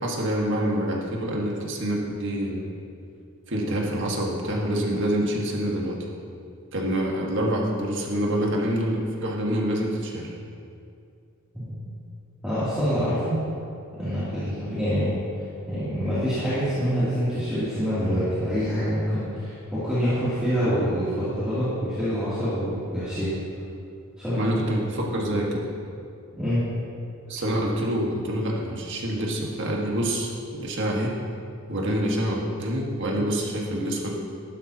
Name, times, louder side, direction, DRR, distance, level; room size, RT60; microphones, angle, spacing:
voice 1, 0.0-2.7 3.5-6.0 6.7-10.3 24.3-25.7 27.3-31.2 31.7-34.2, equal, 60° right, -2 dB, 1.8 m, -26 dB
voice 2, 12.4-13.4 14.0-15.2 15.7-23.3 24.2-24.4 26.4-26.6, equal, 5° right, -15 dB, 3.0 m, -26 dB
14.0 x 11.5 x 3.0 m, 2.4 s
head